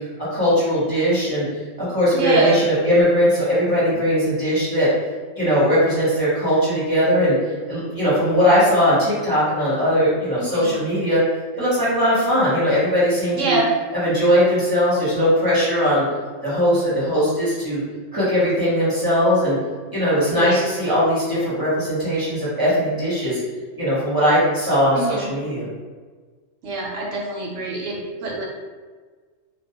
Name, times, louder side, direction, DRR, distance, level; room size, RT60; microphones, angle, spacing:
voice 1, 0.3-1.5 1.9-4.9 5.4-7.3 7.7-11.2 11.5-13.6 13.9-16.0 16.4-17.8 18.1-19.6 19.9-23.4 23.8-25.7, equal, 20° right, -10 dB, 0.7 m, -19 dB
voice 2, 2.1-2.6 10.5-10.7 13.3-13.7 20.3-20.7 24.9-25.3 26.6-28.4, right 3 dB, 70° right, -3 dB, 0.9 m, -25 dB
2.3 x 2.1 x 2.7 m, 1.4 s
omnidirectional pair, 1.4 m